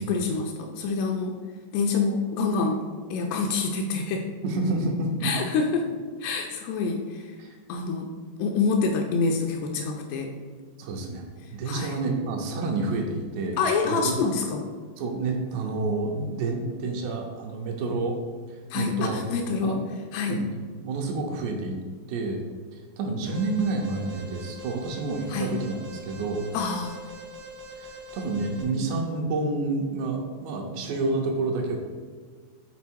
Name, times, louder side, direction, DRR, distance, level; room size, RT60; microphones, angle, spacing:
voice 1, 0.0-1.4 1.7-2.8 3.1-4.3 5.2-5.9 6.2-7.4 7.7-8.1 8.4-10.3 11.4-12.0 13.6-14.7 18.7-19.8 20.1-20.4 25.3-25.5 26.5-27.0, left 4 dB, 80° left, 3 dB, 2.5 m, -27 dB
voice 2, 4.4-5.3 7.4-7.6 10.8-11.2 11.5-13.6 13.8-14.0 15.0-18.2 18.5-19.2 19.6-19.8 20.3-20.4 20.8-21.8 22.1-22.4 22.7-26.4 27.8-31.8, right 3 dB, 80° right, 1 dB, 2.8 m, -29 dB
Alarm, 23.3-28.6, right 1 dB, 55° right, 1.1 m, -43 dB
7.2 x 4.0 x 4.5 m, 1.5 s
omnidirectional pair, 5.1 m